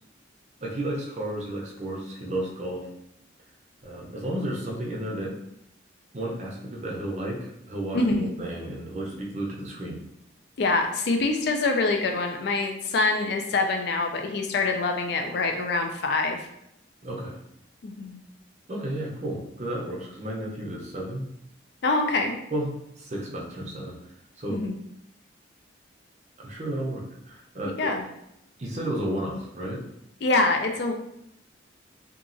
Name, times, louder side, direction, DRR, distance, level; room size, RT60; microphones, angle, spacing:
voice 1, 0.6-2.9 3.8-5.4 6.1-10.0 17.0-17.4 18.7-21.3 22.5-24.6 26.4-27.9 28.6-29.8, right 1 dB, 35° right, -2 dB, 0.5 m, -32 dB
voice 2, 7.9-8.3 10.6-16.4 17.8-18.2 21.8-22.3 24.5-24.7 27.8-28.0 30.2-30.9, left 3 dB, 55° left, 4 dB, 0.3 m, -25 dB
2.9 x 2.3 x 2.5 m, 0.78 s
head